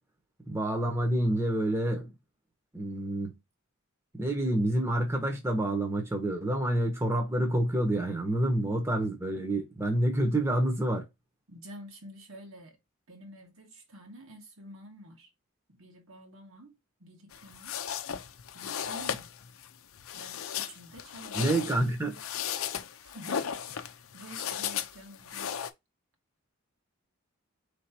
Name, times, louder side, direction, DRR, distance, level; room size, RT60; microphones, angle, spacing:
voice 1, 0.5-2.1 2.7-3.4 4.1-11.0 21.3-22.2, right 1 dB, 10° right, 0.9 m, -28 dB
voice 2, 11.5-12.8 13.1-15.3 15.7-17.8 18.5-19.3 20.1-21.7 23.0-23.5 23.8-25.7, right 1 dB, 75° right, 1.7 m, -49 dB
sound 1, 17.3-25.7, left 8 dB, 75° left, 0.5 m, -36 dB
4.7 x 3.4 x 2.9 m
head